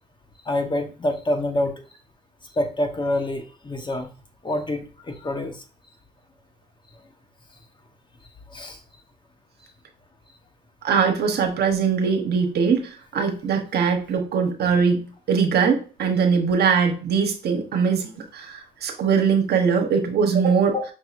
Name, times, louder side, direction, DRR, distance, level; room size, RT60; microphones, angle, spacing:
voice 1, 0.5-1.7 2.6-4.1 4.4-5.6 8.5-8.8 20.7-20.8, left 1 dB, 25° left, 5 dB, 1.0 m, -26 dB
voice 2, 10.8-20.7, right 6 dB, 65° right, 4 dB, 1.0 m, -21 dB
5.8 x 2.8 x 2.5 m, 0.35 s
supercardioid pair, 65°, 18 cm